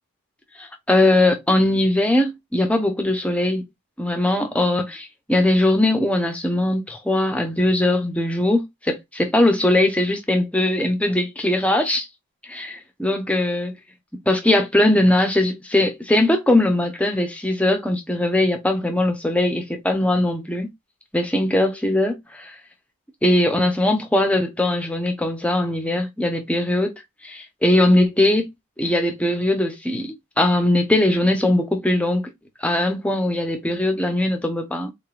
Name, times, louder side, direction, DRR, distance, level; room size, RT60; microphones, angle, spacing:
voice 1, 0.6-3.6 4.0-12.1 12.5-13.7 14.3-20.7 21.1-22.5 23.2-26.9 27.2-28.5 28.8-32.3 32.6-34.9, left 1 dB, 5° left, 0.8 m, -20 dB
3.8 x 3.6 x 2.4 m
head